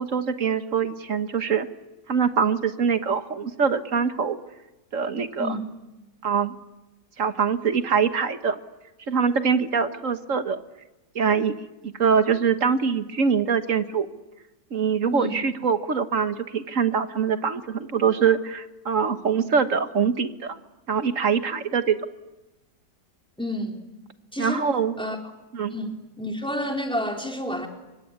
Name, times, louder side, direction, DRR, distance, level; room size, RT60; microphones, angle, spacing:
voice 1, 0.0-1.7 2.1-4.4 4.9-5.6 6.2-6.6 7.2-8.6 9.1-10.6 11.1-11.6 11.8-14.1 14.7-20.6 20.9-22.0 24.4-24.9 25.5-25.7, right 6 dB, 50° right, 10 dB, 1.6 m, -23 dB
voice 2, 23.4-23.9 24.3-24.7 25.0-25.2 25.7-27.7, equal, 5° left, 2 dB, 3.7 m, -30 dB
25.0 x 23.5 x 9.7 m, 1.1 s
omnidirectional pair, 1.8 m